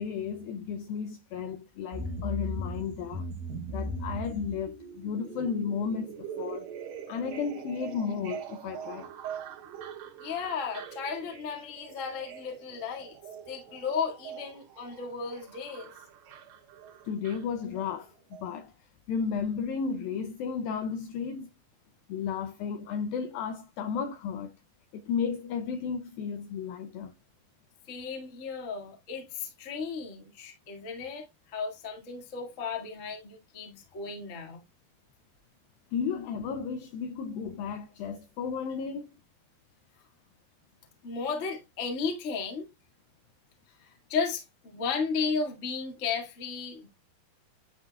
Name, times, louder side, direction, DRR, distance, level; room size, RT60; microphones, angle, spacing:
voice 1, 0.0-3.3 3.7-6.7 7.1-9.1 17.1-18.1 18.4-18.7 19.1-21.5 22.1-24.6 24.9-27.1 35.9-39.1, left 6 dB, 80° left, 2.1 m, -33 dB
sound 1, 1.9-18.0 18.3-18.4, right 3 dB, 65° right, 3.0 m, -40 dB
voice 2, 10.2-13.2 13.5-15.9 27.9-31.3 31.5-34.6 41.0-42.7 43.8-47.0, left 5 dB, 40° left, 1.0 m, -34 dB
11.0 x 3.8 x 2.3 m
omnidirectional pair, 4.7 m